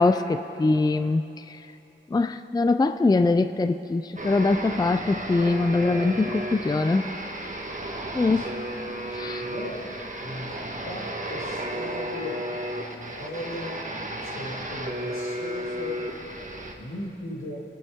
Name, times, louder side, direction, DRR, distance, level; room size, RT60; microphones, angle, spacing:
voice 1, 0.0-1.6 2.1-7.1 8.1-8.4 9.1-9.5, left 3 dB, 20° left, 11 dB, 0.3 m, -23 dB
sound 1, 4.2-16.7, right 1 dB, 40° right, 1.2 m, -33 dB
voice 2, 8.2-8.6 9.2-12.4 12.7-13.8 14.1-16.0 16.8-17.6, left 1 dB, 85° left, -3 dB, 2.1 m, -37 dB
22.0 x 8.6 x 3.6 m, 2.9 s
wide cardioid pair, 50°, 20 cm